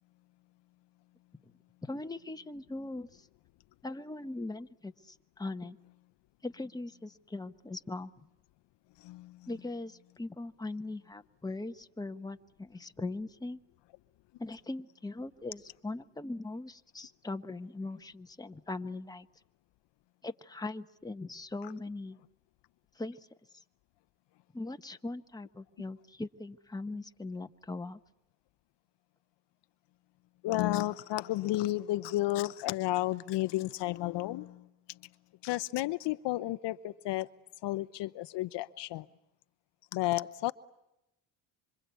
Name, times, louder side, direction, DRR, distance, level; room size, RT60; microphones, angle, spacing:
voice 1, 1.8-3.3 3.8-5.8 6.4-8.1 9.5-13.6 14.4-19.3 20.2-22.2 22.9-23.3 24.5-28.0, left 2 dB, 10° left, 1.2 m, -40 dB
voice 2, 9.0-9.5 30.4-35.0 35.4-37.3 37.6-39.1 39.9-40.5, left 16 dB, 65° left, 0.9 m, -32 dB
26.5 x 25.5 x 8.4 m
supercardioid pair, 80°, 45 cm